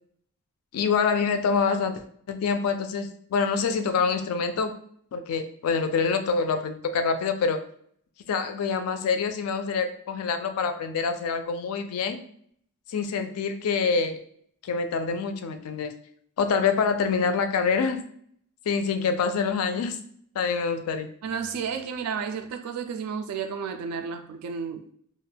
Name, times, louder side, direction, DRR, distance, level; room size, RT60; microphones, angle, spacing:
voice 1, 0.7-2.0 2.3-4.7 5.1-7.6 8.3-12.2 12.9-14.2 14.6-15.9 16.4-18.0 18.7-20.0 20.4-21.1, left 5 dB, 70° left, 8 dB, 0.3 m, -26 dB
voice 2, 21.2-24.8, right 6 dB, 75° right, 11 dB, 0.3 m, -32 dB
2.4 x 2.1 x 3.3 m, 0.63 s
head